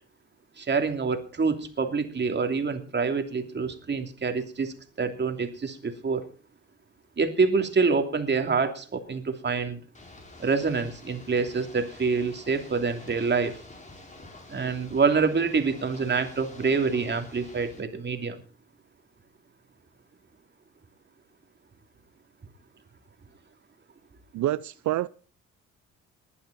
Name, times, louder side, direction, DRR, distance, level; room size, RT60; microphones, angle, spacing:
voice 1, 0.6-6.2 7.2-9.8 10.4-13.6 14.5-18.4, right 4 dB, 35° right, 2.9 m, -26 dB
Ocean / Boat Water vehicle, 9.9-17.8, left 2 dB, 25° left, 5.2 m, -49 dB
voice 2, 24.3-25.1, right 14 dB, 70° right, 0.6 m, -27 dB
20.0 x 11.0 x 4.2 m
cardioid pair, 90°, 30 cm